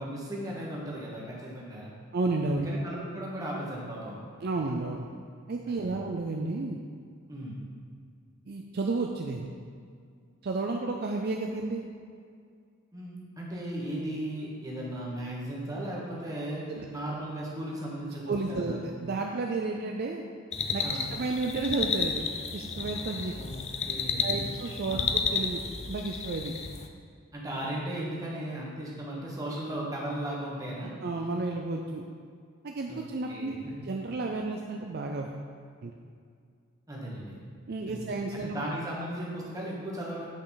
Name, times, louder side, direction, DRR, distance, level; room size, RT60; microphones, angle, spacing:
voice 1, 0.0-1.9 2.5-4.2 5.7-6.0 7.3-7.6 12.9-18.8 20.8-21.1 23.3-23.6 23.9-24.4 24.9-25.1 27.3-30.9 32.9-33.0 33.3-33.7 36.9-37.4 37.8-40.3, right 1 dB, 15° right, -5 dB, 1.4 m, -36 dB
voice 2, 2.1-2.7 4.4-5.1 5.5-6.8 8.5-9.5 10.4-11.8 16.7-16.9 18.3-20.2 20.7-20.8 21.1-22.2 22.5-23.3 24.2-25.6 25.9-26.5 31.0-32.0 32.6-33.5 33.8-35.3 35.8-35.9 37.7-38.6, right 3 dB, 50° right, 2 dB, 0.4 m, -32 dB
sound 1, 20.5-26.9, left 5 dB, 30° left, 0.4 m, -32 dB
8.6 x 5.2 x 4.0 m, 2.2 s
head